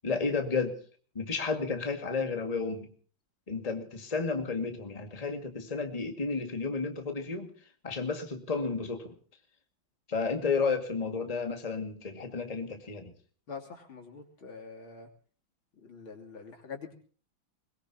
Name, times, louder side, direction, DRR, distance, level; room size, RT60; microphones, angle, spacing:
voice 1, 0.0-0.8 1.2-2.9 3.5-7.5 7.8-9.1 10.1-13.1, left 4 dB, 20° left, 5 dB, 2.0 m, -32 dB
voice 2, 13.5-15.1 15.8-17.0, left 5 dB, 80° left, 2 dB, 3.9 m, -45 dB
22.0 x 21.5 x 2.9 m, 0.42 s
omnidirectional pair, 2.2 m